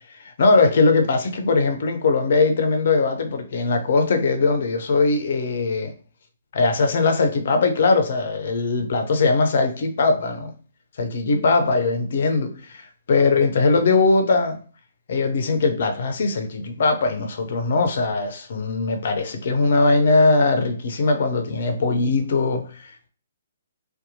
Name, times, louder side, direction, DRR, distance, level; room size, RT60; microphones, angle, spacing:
voice 1, 0.4-5.9 6.5-10.5 11.0-14.6 15.1-23.1, left 3 dB, 55° left, 0.5 m, -20 dB
2.7 x 2.2 x 2.6 m
figure-of-eight pair, 130°, 0 cm